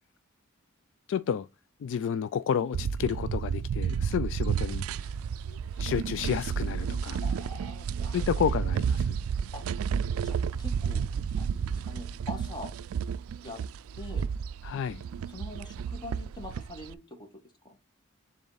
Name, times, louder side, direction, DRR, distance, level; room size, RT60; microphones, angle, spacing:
voice 1, 1.1-1.5 1.8-4.9 5.5-7.2 8.1-9.2 14.6-15.0, left 8 dB, 60° left, 0.3 m, -31 dB
sound 1, 2.7-16.9, right 7 dB, 80° right, 0.3 m, -31 dB
voice 2, 7.2-8.4 9.5-9.6 10.2-11.1 11.3-12.7 13.4-13.6 13.9-14.2 15.3-17.3 17.6-17.8, left 2 dB, 20° left, 1.5 m, -43 dB
6.9 x 3.7 x 4.0 m
head